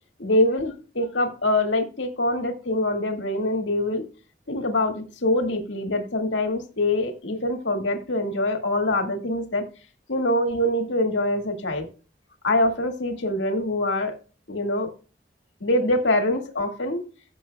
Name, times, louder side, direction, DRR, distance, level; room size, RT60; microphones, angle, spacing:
voice 1, 0.2-4.0 4.5-9.7 10.1-11.9 12.4-14.1 14.5-14.9 15.6-17.0, left 1 dB, 90° left, 4 dB, 2.0 m, -24 dB
16.0 x 7.5 x 2.3 m, 0.36 s
head